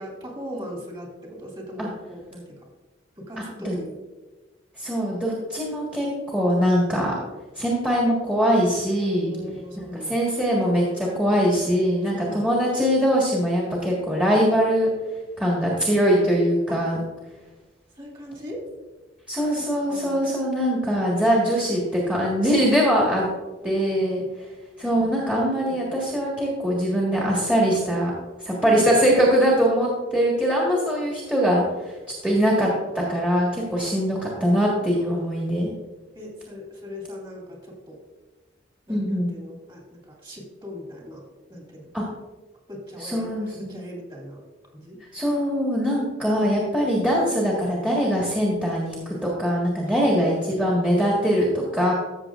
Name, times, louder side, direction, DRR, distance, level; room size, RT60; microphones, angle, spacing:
voice 1, 0.0-2.7 3.2-4.0 9.2-10.2 12.0-12.5 16.7-16.9 18.0-18.6 19.6-20.2 23.1-23.3 23.6-24.3 24.9-25.1 25.6-26.0 28.6-28.9 35.0-35.1 36.1-38.0 38.9-41.2 41.5-41.9 42.7-44.4 44.7-45.0 45.9-46.2, equal, 25° right, -2 dB, 2.6 m, -39 dB
voice 2, 4.8-7.2 7.5-9.4 9.9-14.9 15.4-17.0 19.3-23.3 23.6-24.2 24.8-28.1 28.4-32.7 32.9-35.7 38.9-39.3 41.9-42.0 43.0-43.8 45.1-51.5 51.7-51.9, equal, 5° right, -5 dB, 1.6 m, -22 dB
14.0 x 7.0 x 2.5 m, 1.2 s
head